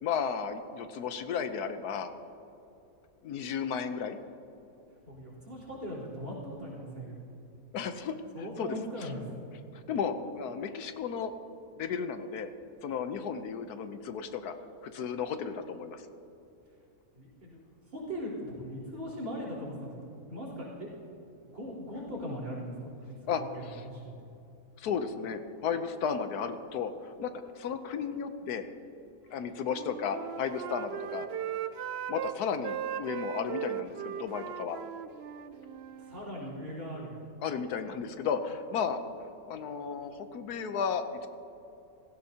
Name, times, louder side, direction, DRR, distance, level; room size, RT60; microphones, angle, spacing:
voice 1, 0.0-2.1 3.2-4.2 7.7-9.1 9.7-11.3 11.8-12.5 12.8-14.6 14.8-16.0 23.3-23.8 24.8-28.7 29.3-31.3 32.1-34.8 37.4-39.0 39.5-41.3, left 6 dB, 80° left, 9 dB, 1.3 m, -34 dB
voice 2, 5.0-7.2 8.3-9.3 17.1-17.6 17.9-20.9 21.5-22.8 23.0-24.1 36.0-37.2, equal, 50° right, -5 dB, 4.2 m, -39 dB
Wind instrument woodwind instrument, 29.6-32.3 32.6-36.3, right 10 dB, 85° right, 0.5 m, -38 dB
17.0 x 15.5 x 2.8 m, 2.8 s
omnidirectional pair, 1.6 m